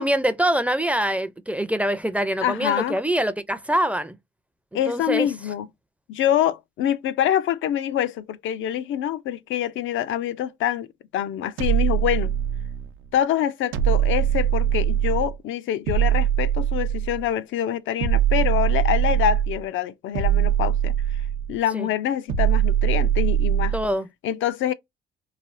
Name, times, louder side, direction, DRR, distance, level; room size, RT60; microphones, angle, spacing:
voice 1, 0.0-4.2 4.9-5.3 21.7-21.9 23.7-24.1, right 1 dB, 5° right, 0.4 m, -24 dB
voice 2, 2.4-3.0 4.7-5.7 6.1-10.9 11.1-12.3 13.1-20.9 21.5-23.7 24.2-24.7, left 10 dB, 80° left, 0.5 m, -25 dB
sound 1, 11.6-12.9 13.7-15.4 15.9-17.3 18.0-19.6 20.1-21.5 22.3-23.9, right 10 dB, 85° right, 0.6 m, -22 dB
3.2 x 2.3 x 2.5 m
cardioid pair, 90°, 20 cm